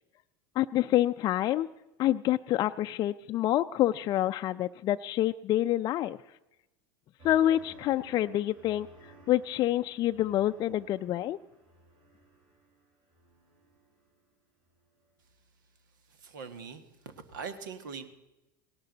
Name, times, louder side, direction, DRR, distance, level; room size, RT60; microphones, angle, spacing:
voice 1, 0.6-1.7 2.0-6.2 7.2-11.4, left 13 dB, 40° left, 8 dB, 0.4 m, -27 dB
sound 1, 7.2-14.2 14.6-15.1, right 2 dB, 55° right, 7.7 m, -57 dB
voice 2, 16.1-18.1, right 5 dB, 80° right, 10 dB, 1.5 m, -42 dB
18.5 x 17.0 x 4.0 m, 0.98 s
hypercardioid pair, 85°, 10 cm